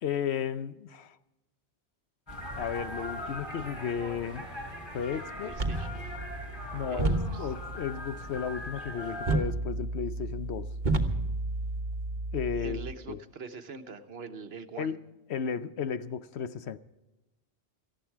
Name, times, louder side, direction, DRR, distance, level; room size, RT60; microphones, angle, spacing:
voice 1, 0.0-1.1 2.6-4.5 4.9-5.6 6.7-10.7 12.3-12.8 13.1-13.2 14.8-15.0 15.3-16.8, left 7 dB, 70° left, 1.0 m, -34 dB
sound 1, 2.3-9.4, left 1 dB, 20° left, 3.3 m, -40 dB
voice 2, 5.4-6.0 6.7-7.0 7.3-7.5 12.6-15.0, right 4 dB, 65° right, 1.3 m, -43 dB
sound 2, 5.5-12.9, right 2 dB, 45° right, 1.3 m, -32 dB
18.5 x 14.0 x 4.6 m
omnidirectional pair, 1.1 m